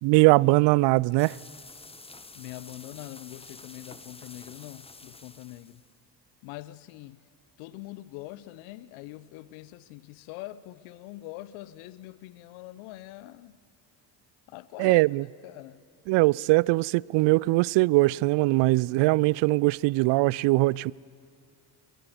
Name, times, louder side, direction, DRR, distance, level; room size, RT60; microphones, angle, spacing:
voice 1, 0.0-1.4 14.8-15.2 16.1-20.9, right 22 dB, 60° right, 0.5 m, -21 dB
sound 1, 1.2-5.9, left 3 dB, 10° left, 1.0 m, -48 dB
voice 2, 2.3-5.8 6.4-7.2 7.6-13.6 14.5-15.0 15.4-15.8, left 17 dB, 75° left, 0.9 m, -43 dB
24.0 x 19.5 x 7.9 m
hypercardioid pair, 50°, 50 cm